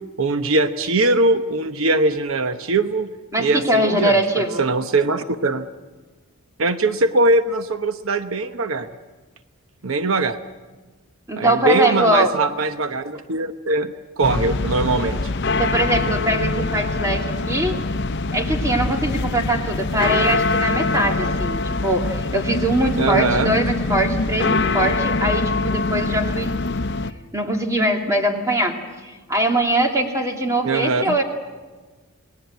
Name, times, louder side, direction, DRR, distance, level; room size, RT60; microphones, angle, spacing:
voice 1, 0.2-3.1 3.4-5.7 6.6-8.9 9.8-10.4 11.4-15.2 23.0-23.6 30.6-31.2, right 2 dB, 70° right, 9 dB, 1.0 m, -21 dB
voice 2, 3.3-4.6 11.3-12.3 15.6-17.8 18.3-26.5 27.3-28.8 29.0-31.2, right 1 dB, 15° right, 2 dB, 2.5 m, -22 dB
sound 1, 14.2-27.1, left 3 dB, 55° left, 0.8 m, -23 dB
28.5 x 19.5 x 8.2 m, 1.3 s
head